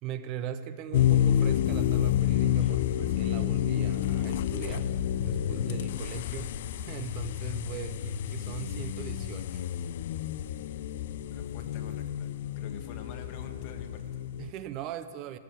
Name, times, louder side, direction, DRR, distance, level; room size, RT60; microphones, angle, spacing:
voice 1, 0.0-4.9 5.2-6.5 6.8-9.6 14.4-15.4, right 10 dB, 35° right, 12 dB, 0.5 m, -40 dB
sound 1, 0.9-14.5, left 10 dB, 60° left, 0.4 m, -29 dB
sound 2, 2.6-2.8 4.2-4.3 4.6-4.9 6.2-6.9, left 2 dB, 5° left, 1.0 m, -57 dB
voice 2, 11.3-12.3 12.6-14.2, left 6 dB, 40° left, 5 dB, 1.3 m, -46 dB
15.5 x 6.2 x 8.0 m, 2.1 s
hypercardioid pair, 150°, 0 cm